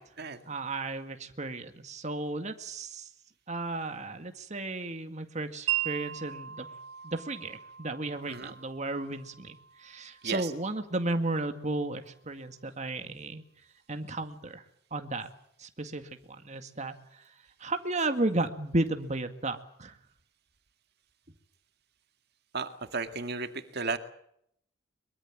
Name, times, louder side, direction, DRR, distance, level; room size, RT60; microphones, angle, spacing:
voice 1, 0.5-3.1 3.5-6.7 7.0-13.4 13.9-14.6 14.9-15.3 15.6-16.1 16.4-17.3 17.6-20.0, right 2 dB, 40° right, 7 dB, 2.0 m, -34 dB
Wind chime, 5.7-11.8, right 13 dB, 80° right, 3.9 m, -39 dB
voice 2, 22.5-24.0, right 4 dB, 60° right, 8 dB, 2.0 m, -34 dB
23.0 x 23.0 x 7.3 m, 0.72 s
head